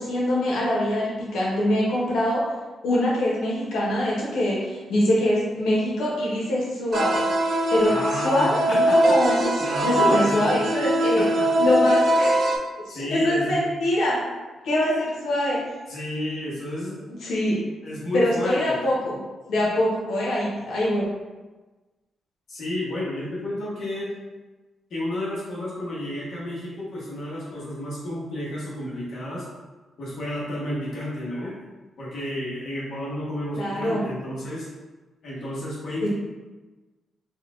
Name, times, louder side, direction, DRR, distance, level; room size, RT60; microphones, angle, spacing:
voice 1, 0.0-2.5 2.8-9.5 9.8-11.2 11.6-12.4 12.9-14.2 14.6-15.6 17.2-17.6 18.1-19.2 19.5-21.0 33.5-34.1 36.0-36.1, left 1 dB, 90° left, -5 dB, 1.1 m, -24 dB
sound 1, 6.9-12.6, right 1 dB, 60° right, 0.5 m, -21 dB
voice 2, 7.8-9.1 9.6-10.6 11.2-11.5 12.9-13.6 15.9-17.0 17.8-18.8 22.5-24.1 24.9-29.4 30.0-31.5 32.0-34.7 35.2-36.1, left 1 dB, 60° left, -7 dB, 1.1 m, -31 dB
4.1 x 2.4 x 3.7 m, 1.2 s
wide cardioid pair, 145°, 0 cm